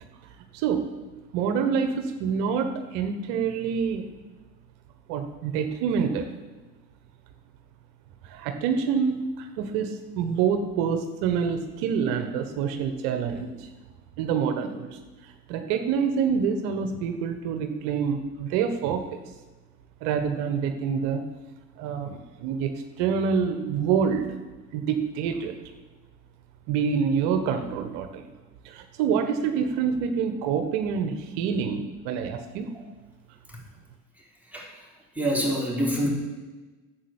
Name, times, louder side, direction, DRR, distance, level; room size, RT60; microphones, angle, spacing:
voice 1, 0.5-0.8 1.3-4.1 5.1-6.3 8.2-13.7 14.2-19.2 20.0-21.2 21.8-24.3 24.7-25.5 26.7-28.3 28.6-32.7, right 6 dB, 60° right, 7 dB, 1.4 m, -27 dB
voice 2, 35.1-36.1, equal, 5° right, -4 dB, 3.8 m, -26 dB
13.0 x 7.6 x 7.3 m, 1.2 s
figure-of-eight pair, 65°, 48 cm